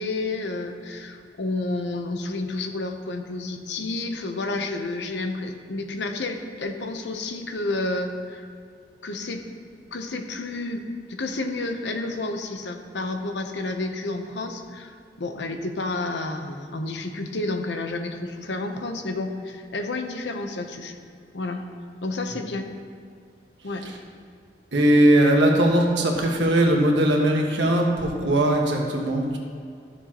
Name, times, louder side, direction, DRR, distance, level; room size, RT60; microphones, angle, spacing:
voice 1, 0.0-8.5 9.0-9.4 9.9-10.8 11.1-20.9 21.3-21.6 22.0-22.7 23.6-23.8, left 2 dB, 80° left, 5 dB, 0.9 m, -30 dB
voice 2, 24.7-29.4, right 1 dB, 90° right, 0 dB, 1.5 m, -20 dB
13.5 x 7.0 x 3.0 m, 2.3 s
head